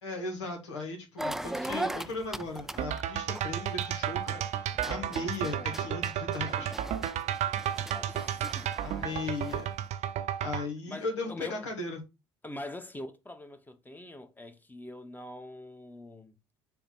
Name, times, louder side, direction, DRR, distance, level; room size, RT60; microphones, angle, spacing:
voice 1, 0.0-6.7 8.8-9.7 10.4-12.0, left 3 dB, 85° left, 1.8 m, -37 dB
sound 1, 1.2-4.3 4.7-9.8, right 1 dB, 5° right, 0.4 m, -39 dB
sound 2, 2.8-10.7, right 10 dB, 55° right, 0.7 m, -33 dB
voice 2, 7.9-9.4 10.9-11.6 12.4-16.3, left 1 dB, 10° left, 1.2 m, -44 dB
7.1 x 3.0 x 5.2 m
hypercardioid pair, 60°, 14 cm